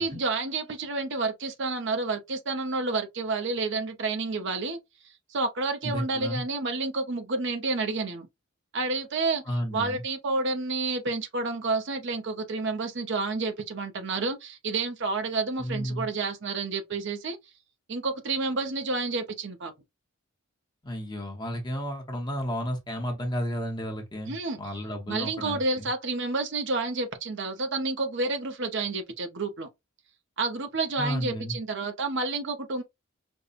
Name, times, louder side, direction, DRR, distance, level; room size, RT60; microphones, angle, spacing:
voice 1, 0.0-4.8 5.3-8.3 8.7-9.4 9.7-17.4 17.9-19.7 24.3-24.6 25.1-29.7 30.4-32.8, right 3 dB, 55° right, 0.7 m, -29 dB
voice 2, 5.8-6.4 9.4-10.0 15.6-16.1 20.8-25.9 31.0-31.6, equal, 20° left, 0.8 m, -32 dB
5.3 x 2.1 x 2.4 m
head